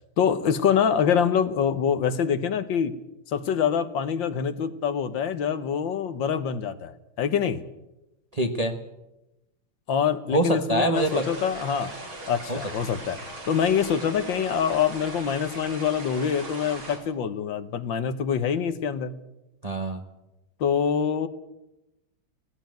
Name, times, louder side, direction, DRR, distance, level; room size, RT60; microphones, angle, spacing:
voice 1, 0.2-2.9 3.3-7.6 9.9-11.9 12.3-13.2 13.5-19.1 20.6-21.3, left 7 dB, 70° left, 12 dB, 1.7 m, -25 dB
voice 2, 8.3-8.8 10.3-11.3 12.5-12.6 19.6-20.0, right 1 dB, 25° right, 5 dB, 0.9 m, -25 dB
sound 1, 10.9-17.0, right 2 dB, 85° right, 5.1 m, -39 dB
17.5 x 16.0 x 9.2 m, 0.94 s
omnidirectional pair, 2.2 m